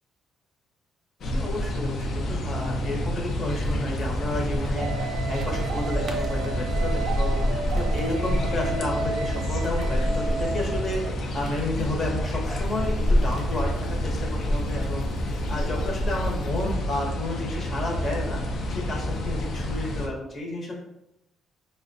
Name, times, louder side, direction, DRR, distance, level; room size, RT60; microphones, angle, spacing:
sound 1, 1.2-20.1, equal, 50° left, 0.5 m, -27 dB
voice 1, 1.2-7.4 7.7-18.4 18.7-20.7, left 2 dB, 35° left, 0 dB, 0.8 m, -32 dB
sound 2, 3.6-16.7, equal, 45° right, 0.6 m, -44 dB
sound 3, 4.8-11.1, right 4 dB, 75° right, 0.3 m, -34 dB
4.8 x 2.2 x 2.5 m, 0.87 s
cardioid pair, 145°, 0 cm